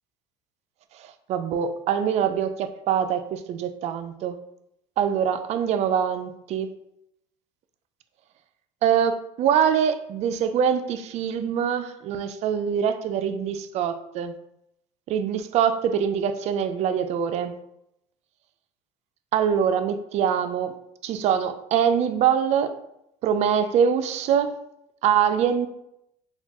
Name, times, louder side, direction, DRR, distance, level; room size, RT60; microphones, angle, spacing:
voice 1, 1.3-4.4 5.0-6.7 8.8-14.3 15.1-17.6 19.3-20.7 21.0-22.7 23.2-24.6 25.0-25.7, right 8 dB, 50° right, 10 dB, 0.4 m, -24 dB
4.2 x 2.3 x 2.9 m, 0.80 s
supercardioid pair, 105°, 14 cm